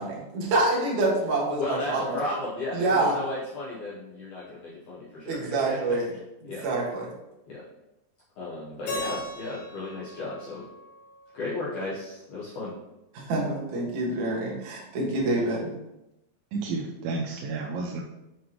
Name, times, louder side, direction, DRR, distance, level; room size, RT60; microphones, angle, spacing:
voice 1, 0.0-2.2 2.7-3.2 5.3-6.1 6.6-7.1 13.1-15.7, right 2 dB, 60° right, -4 dB, 2.1 m, -26 dB
voice 2, 1.6-6.0 6.4-6.7 7.5-7.6 8.4-10.6 11.3-12.7, left 2 dB, 90° left, -8 dB, 1.7 m, -34 dB
Keyboard (musical), 8.9-11.8, left 2 dB, 65° left, 3.6 m, -38 dB
voice 3, 16.5-18.0, right 3 dB, 90° right, -1 dB, 2.9 m, -31 dB
7.7 x 5.0 x 3.1 m, 0.92 s
omnidirectional pair, 5.2 m